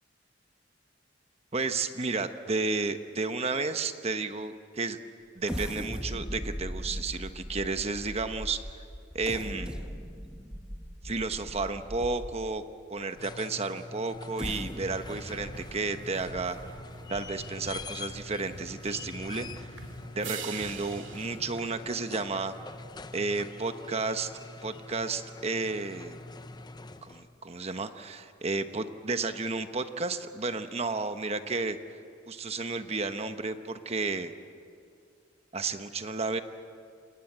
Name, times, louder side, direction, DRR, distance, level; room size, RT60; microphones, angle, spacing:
voice 1, 1.5-5.0 5.3-8.6 9.1-9.8 11.0-12.6 12.9-16.6 17.1-19.7 20.2-22.5 23.1-24.3 24.6-26.2 27.0-32.0 32.3-34.3 35.5-36.4, right 3 dB, 35° right, 9 dB, 1.0 m, -32 dB
sound 1, 5.4-12.6 13.2-13.3 14.1-17.7 18.1-18.2 18.7-18.9, equal, 5° right, 1.4 m, -40 dB
sound 2, 13.0-27.4 29.1-29.2, left 3 dB, 20° left, 0.7 m, -45 dB
sound 3, 14.8-21.7, right 4 dB, 85° right, 2.2 m, -45 dB
28.5 x 18.5 x 8.0 m, 2.3 s
head